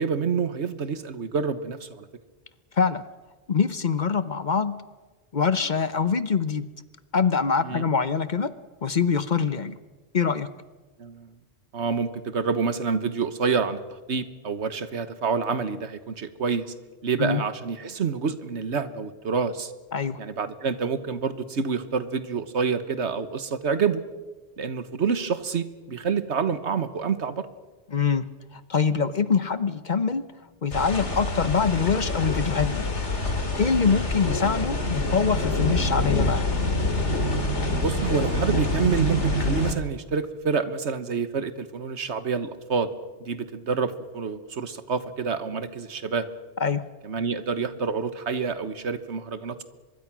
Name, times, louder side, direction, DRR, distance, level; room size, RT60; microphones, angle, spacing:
voice 1, 0.0-2.1 7.6-7.9 11.0-11.3 11.7-16.7 17.0-19.7 20.2-24.0 24.6-27.5 33.8-34.0 37.8-42.9 43.2-46.3 47.0-49.6, right 5 dB, 75° right, 12 dB, 1.5 m, -28 dB
voice 2, 3.5-4.7 5.3-6.7 7.1-8.5 8.8-9.7 10.1-10.5 17.2-17.4 19.9-20.2 27.9-28.3 28.5-30.2 30.6-32.9 33.6-36.4 46.6-46.8, left 5 dB, 45° left, 13 dB, 0.9 m, -24 dB
sound 1, 30.7-39.7, left 1 dB, 80° left, 2.8 m, -26 dB
24.0 x 22.0 x 6.1 m, 1.3 s
omnidirectional pair, 1.2 m